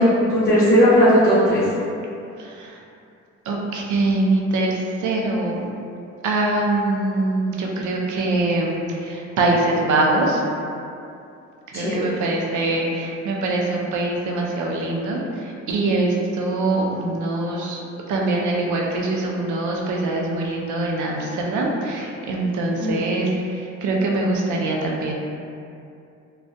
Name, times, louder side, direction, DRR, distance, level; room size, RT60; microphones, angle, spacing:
voice 1, 0.0-1.6 11.7-12.2 22.8-22.9, equal, 30° left, -13 dB, 0.9 m, -17 dB
voice 2, 2.4-2.8 3.5-5.7 6.2-10.4 11.7-17.8 18.1-25.1, right 2 dB, 75° right, -1 dB, 0.5 m, -23 dB
2.2 x 2.1 x 2.5 m, 2.6 s
cardioid pair, 90°, 30 cm